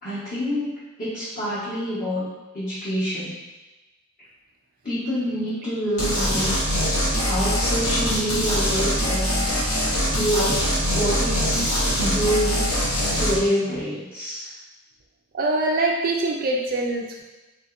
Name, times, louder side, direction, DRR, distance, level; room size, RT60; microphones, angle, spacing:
voice 1, 0.0-2.3 2.5-3.4 4.8-6.5 7.2-9.4 10.1-12.8 13.1-14.5, equal, 40° left, -13 dB, 1.1 m, -27 dB
sound 1, 6.0-13.4, equal, 80° left, 0.9 m, -23 dB
voice 2, 15.3-17.2, right 2 dB, 40° right, 0 dB, 0.3 m, -23 dB
3.7 x 2.7 x 2.4 m, 1.1 s
head